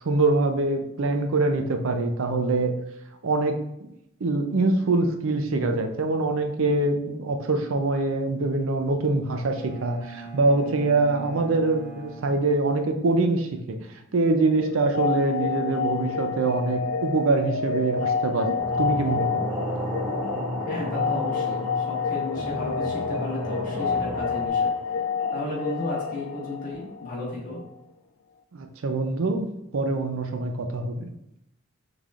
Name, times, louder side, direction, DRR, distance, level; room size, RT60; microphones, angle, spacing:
voice 1, 0.0-2.7 3.2-3.9 4.2-13.8 14.1-19.5 28.5-29.5 29.7-31.1, right 3 dB, 75° right, 6 dB, 0.5 m, -24 dB
Bowed string instrument, 9.3-13.1, right 3 dB, 10° left, 1.3 m, -42 dB
sound 1, 14.5-27.3, left 6 dB, 80° left, 0.3 m, -29 dB
sound 2, 18.6-24.5, equal, 10° right, 0.5 m, -32 dB
voice 2, 20.6-24.7 25.3-27.6, left 1 dB, 40° left, -5 dB, 1.5 m, -34 dB
5.5 x 3.4 x 2.4 m, 0.81 s
head